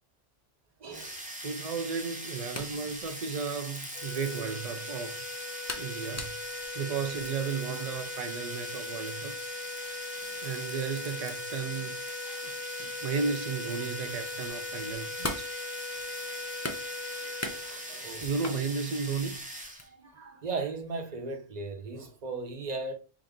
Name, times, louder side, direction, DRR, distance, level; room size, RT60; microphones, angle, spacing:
voice 1, 0.8-1.2 9.8-10.0 12.2-12.5 17.1-18.7 19.8-22.9, right 3 dB, 40° right, 0.8 m, -38 dB
sound 1, 0.9-19.9, right 1 dB, 10° right, 0.6 m, -41 dB
voice 2, 1.4-5.3 5.7-9.3 10.4-12.0 12.4-12.5 12.8-15.5 18.2-19.4, right 5 dB, 65° right, 0.3 m, -34 dB
sound 2, 2.0-4.5 5.0-5.1 5.4-5.5 5.7-12.6 12.9-13.0 13.3-18.6 19.1-19.9, left 2 dB, 25° left, 0.3 m, -43 dB
sound 3, 3.9-18.5, left 4 dB, 65° left, 0.7 m, -40 dB
4.0 x 2.4 x 3.5 m
omnidirectional pair, 1.2 m